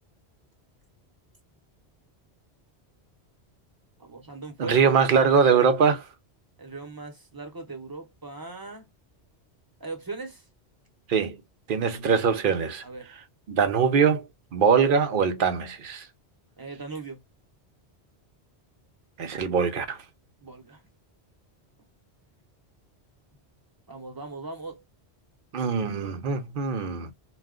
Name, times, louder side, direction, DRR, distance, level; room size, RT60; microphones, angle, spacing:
voice 1, 4.0-5.3 6.6-8.9 9.8-10.4 12.8-13.1 16.6-17.2 20.4-20.8 23.9-24.8, right 3 dB, 20° right, 0.8 m, -39 dB
voice 2, 4.6-6.1 11.1-11.4 11.7-12.8 13.5-14.3 14.5-16.1 19.2-20.0 25.5-27.1, right 6 dB, 60° right, 0.7 m, -22 dB
2.3 x 2.1 x 3.6 m
omnidirectional pair, 1.1 m